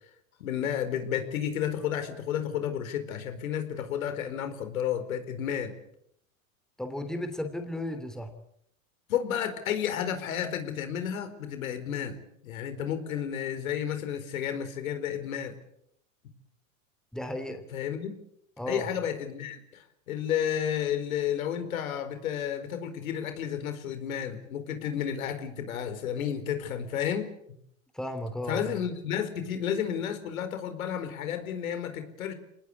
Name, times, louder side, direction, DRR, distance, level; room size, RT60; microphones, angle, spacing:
voice 1, 0.4-5.7 9.1-15.5 17.7-18.2 18.7-27.3 28.5-32.3, left 9 dB, 80° left, 9 dB, 4.6 m, -32 dB
voice 2, 6.8-8.3 17.1-17.6 18.6-18.9 27.9-28.7, left 1 dB, ahead, 7 dB, 3.1 m, -34 dB
26.0 x 19.5 x 8.6 m, 0.73 s
hypercardioid pair, 125°, 41 cm